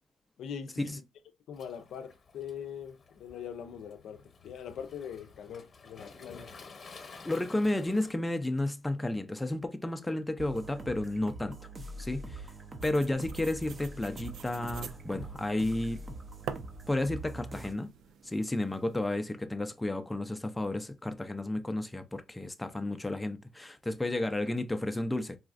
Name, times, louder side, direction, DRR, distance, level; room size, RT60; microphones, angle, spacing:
voice 1, 0.4-1.0 1.5-6.5, left 8 dB, 75° left, 0.4 m, -42 dB
Waves surf, 1.5-8.1, left 4 dB, 40° left, 1.0 m, -52 dB
voice 2, 7.2-11.6 12.0-12.5 12.8-16.0 16.9-17.9 18.2-25.4, left 1 dB, 10° left, 0.5 m, -32 dB
sound 1, 10.4-17.7, right 2 dB, 30° right, 0.6 m, -44 dB
sound 2, 12.8-19.0, right 7 dB, 70° right, 0.4 m, -47 dB
4.0 x 2.4 x 2.4 m
cardioid pair, 90°, 0 cm